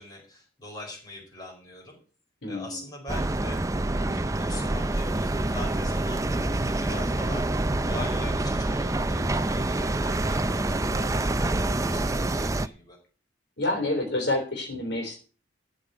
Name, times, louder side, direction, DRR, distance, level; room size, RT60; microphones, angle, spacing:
voice 1, 0.0-2.0 2.4-3.6 4.0-7.5 7.8-13.0, left 1 dB, 20° left, -1 dB, 4.9 m, -42 dB
voice 2, 2.4-2.8 6.3-6.6 10.7-11.0 13.6-15.1, left 2 dB, 65° left, 2 dB, 3.7 m, -29 dB
sound 1, 3.1-12.7, right 2 dB, 15° right, 0.5 m, -26 dB
13.5 x 5.4 x 8.0 m, 0.38 s
head